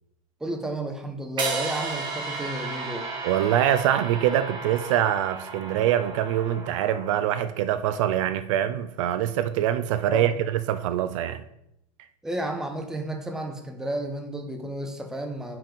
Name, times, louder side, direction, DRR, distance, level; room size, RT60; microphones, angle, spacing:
voice 1, 0.4-3.1 10.1-10.3 12.2-15.6, right 1 dB, 5° right, 0.6 m, -32 dB
sound 1, 1.4-7.5, right 4 dB, 25° right, 0.9 m, -34 dB
voice 2, 3.2-11.4, right 11 dB, 55° right, 0.4 m, -24 dB
5.7 x 3.5 x 5.1 m
supercardioid pair, 145°, 19 cm